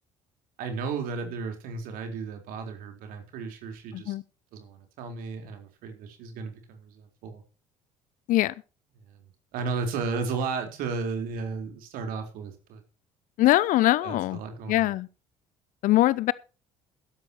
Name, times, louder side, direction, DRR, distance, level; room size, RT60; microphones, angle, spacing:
voice 1, 0.6-4.1 4.5-7.4 9.1-12.8 14.0-14.9, right 4 dB, 60° right, 4.3 m, -34 dB
voice 2, 13.4-14.4 14.7-15.1 15.8-16.3, left 16 dB, 55° left, 0.7 m, -22 dB
16.0 x 13.0 x 3.0 m
figure-of-eight pair, 55°, 16 cm